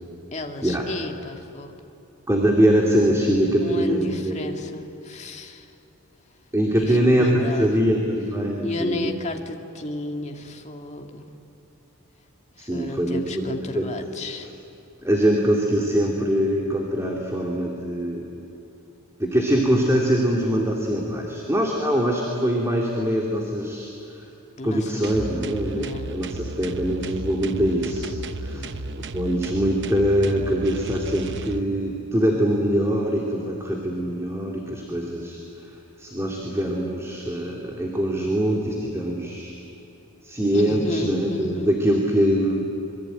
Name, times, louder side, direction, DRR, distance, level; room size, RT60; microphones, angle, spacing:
voice 1, 0.3-1.7 3.6-5.7 6.7-7.8 8.6-11.3 12.6-14.5 24.6-25.4 25.7-26.1 28.5-28.9 40.5-41.7, left 1 dB, 30° left, 3 dB, 2.0 m, -33 dB
voice 2, 2.3-4.6 6.5-9.1 12.6-13.9 14.4-14.5 15.0-18.3 19.2-23.9 24.6-28.1 28.4-28.7 29.1-35.4 36.0-39.5 40.2-42.6, equal, 15° right, -1 dB, 2.5 m, -23 dB
sound 1, 25.0-31.6, right 2 dB, 55° right, 0.9 m, -34 dB
26.5 x 23.0 x 9.1 m, 2.9 s
head